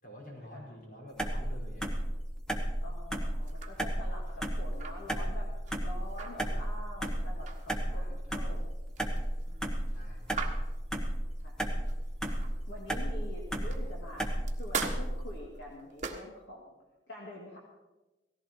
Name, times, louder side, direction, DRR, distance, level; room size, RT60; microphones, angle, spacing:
voice 1, 0.0-2.0 7.9-8.5 9.9-10.4, equal, 50° left, -3 dB, 5.1 m, -49 dB
sound 1, 1.2-15.4, right 1 dB, 5° left, 1.3 m, -34 dB
voice 2, 2.8-5.5 5.8-8.6 9.5-9.7 11.4-11.5 12.7-14.3 14.6-16.7 17.1-17.6, left 1 dB, 65° left, -3 dB, 2.6 m, -46 dB
sound 2, 3.4-12.7 13.2-16.5, right 5 dB, 40° right, 1.4 m, -42 dB
18.0 x 15.0 x 4.5 m, 1.1 s
head